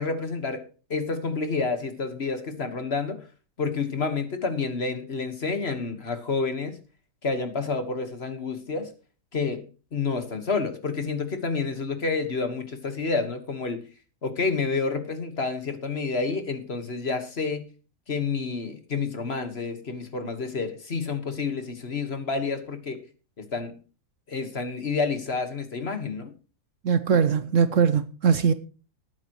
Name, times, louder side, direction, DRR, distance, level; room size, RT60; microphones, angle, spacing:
voice 1, 0.0-3.2 3.6-6.8 7.2-8.9 9.3-13.8 14.2-17.7 18.1-23.0 23.4-23.8 24.3-26.3, left 4 dB, 40° left, 1.6 m, -29 dB
voice 2, 26.8-28.5, right 6 dB, 60° right, 1.0 m, -21 dB
18.5 x 9.1 x 3.0 m
omnidirectional pair, 1.7 m